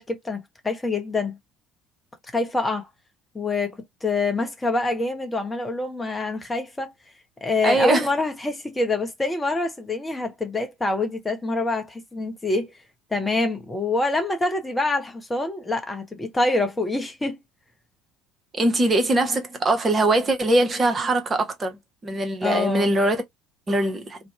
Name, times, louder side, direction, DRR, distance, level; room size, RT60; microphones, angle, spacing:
voice 1, 0.0-1.4 2.3-2.9 3.3-6.9 7.4-12.7 13.1-17.4 22.4-22.9, left 2 dB, 15° left, 0.7 m, -26 dB
voice 2, 7.6-8.1 18.6-21.8 22.0-23.2 23.7-24.2, right 2 dB, 25° right, 0.8 m, -21 dB
2.6 x 2.1 x 2.8 m
figure-of-eight pair, 60°, 0 cm